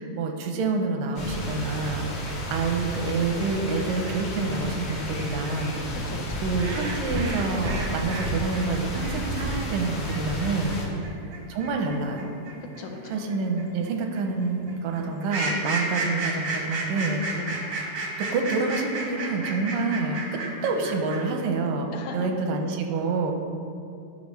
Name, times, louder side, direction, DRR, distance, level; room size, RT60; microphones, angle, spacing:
voice 1, 0.0-2.1 2.5-5.8 6.4-10.8 11.1-12.3 13.1-17.2 18.2-23.3, right 3 dB, 90° right, 3 dB, 2.4 m, -27 dB
sound 1, 1.2-10.9, equal, 50° left, 1.7 m, -32 dB
sound 2, 2.3-8.3 8.5-21.4, right 2 dB, 70° right, 1.1 m, -33 dB
voice 2, 6.1-6.5 10.8-11.2 12.8-13.3 17.3-17.7 21.9-22.2, left 4 dB, 80° left, 2 dB, 2.3 m, -39 dB
11.5 x 5.4 x 3.2 m, 2.6 s
omnidirectional pair, 3.7 m